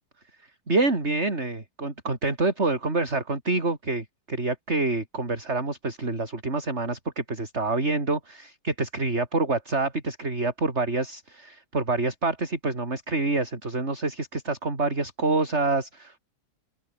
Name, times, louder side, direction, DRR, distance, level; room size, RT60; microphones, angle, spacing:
voice 1, 0.7-16.2, right 3 dB, 30° right, 4.2 m, -27 dB
open air
omnidirectional pair, 2.3 m